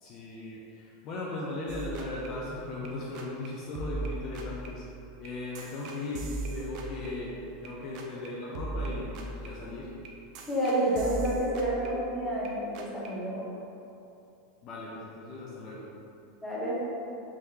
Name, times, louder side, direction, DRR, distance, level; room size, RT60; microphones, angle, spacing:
voice 1, 0.0-4.8 5.2-7.3 7.6-9.9 14.6-15.8, left 2 dB, 35° left, -5 dB, 0.5 m, -38 dB
sound 1, 1.7-3.5 3.7-8.3 8.5-12.5 12.7-13.1, right 2 dB, 45° right, 0.4 m, -39 dB
voice 2, 10.5-13.5 16.4-16.8, right 1 dB, 5° left, -8 dB, 0.8 m, -29 dB
3.5 x 3.1 x 2.8 m, 2.8 s
supercardioid pair, 155°, 0 cm